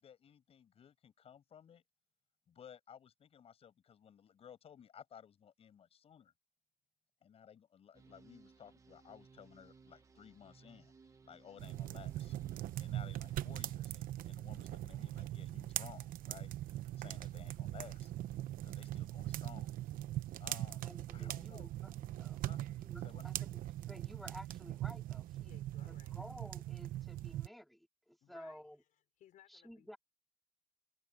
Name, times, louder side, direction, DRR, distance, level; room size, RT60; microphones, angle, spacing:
voice 1, 0.0-1.8 2.5-6.3 7.2-10.9 11.2-12.3 12.8-18.1 18.6-19.7 20.4-20.8 21.1-21.7 22.5-22.6 23.0-23.3, left 8 dB, 40° left, 6.8 m, -57 dB
sound 1, 7.9-13.7, right 4 dB, 20° right, 1.4 m, -62 dB
sound 2, 11.6-27.5, right 14 dB, 70° right, 0.8 m, -41 dB
voice 2, 20.8-22.4 22.7-25.5 25.9-28.8 29.5-30.0, equal, ahead, 2.5 m, -54 dB
voice 3, 25.4-26.1 28.2-30.0, left 11 dB, 60° left, 4.5 m, -64 dB
cardioid pair, 165°, 15 cm